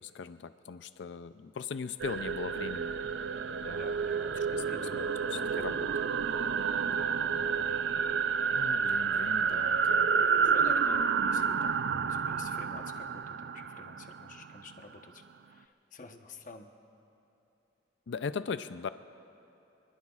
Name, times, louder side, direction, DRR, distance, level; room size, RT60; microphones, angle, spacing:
voice 1, 0.0-2.9 3.6-3.9 4.3-4.6 4.9-6.0 8.5-10.3 18.1-18.9, left 5 dB, 80° left, 12 dB, 0.4 m, -39 dB
sound 1, 2.0-14.7, right 6 dB, 75° right, 0.5 m, -30 dB
voice 2, 3.7-5.5 6.9-7.7 10.3-16.7, left 3 dB, 45° left, 5 dB, 1.0 m, -49 dB
28.0 x 20.5 x 2.4 m, 2.9 s
head